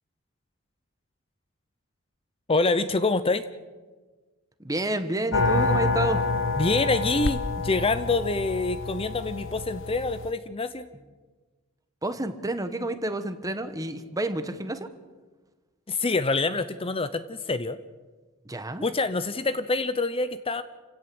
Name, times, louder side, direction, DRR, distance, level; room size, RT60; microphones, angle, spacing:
voice 1, 2.5-3.4 6.6-10.9 15.9-17.8 18.8-20.6, left 3 dB, 25° left, 12 dB, 0.8 m, -26 dB
voice 2, 4.6-6.2 12.0-14.9 18.4-18.9, right 1 dB, 15° right, 9 dB, 1.4 m, -29 dB
sound 1, 5.3-10.3, left 3 dB, 60° left, 0.9 m, -27 dB
28.5 x 17.0 x 7.9 m, 1.4 s
head